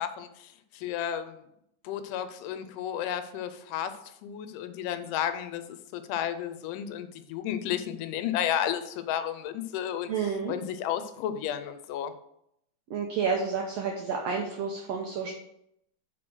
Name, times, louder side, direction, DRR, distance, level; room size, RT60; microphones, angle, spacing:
voice 1, 0.0-1.4 1.8-10.1 10.5-12.1, left 10 dB, 85° left, 11 dB, 2.2 m, -32 dB
voice 2, 10.1-10.5 12.9-15.3, right 5 dB, 70° right, 1 dB, 1.6 m, -30 dB
6.2 x 4.7 x 6.1 m, 0.75 s
omnidirectional pair, 3.7 m